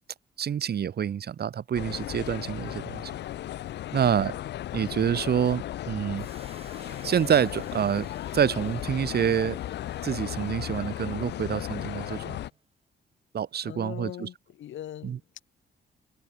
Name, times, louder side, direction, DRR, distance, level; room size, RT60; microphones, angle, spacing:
voice 1, 0.4-3.1 3.9-4.4 4.7-6.3 7.0-8.1 8.3-9.6 10.0-12.4 13.3-14.3 15.0-15.2, right 8 dB, 55° right, 1.2 m, -27 dB
sound 1, 1.7-12.5, left 13 dB, 60° left, 0.4 m, -36 dB
sound 2, 6.2-12.6, right 4 dB, 30° right, 6.9 m, -54 dB
voice 2, 13.6-15.4, left 11 dB, 80° left, 4.4 m, -41 dB
cardioid pair, 75°, 20 cm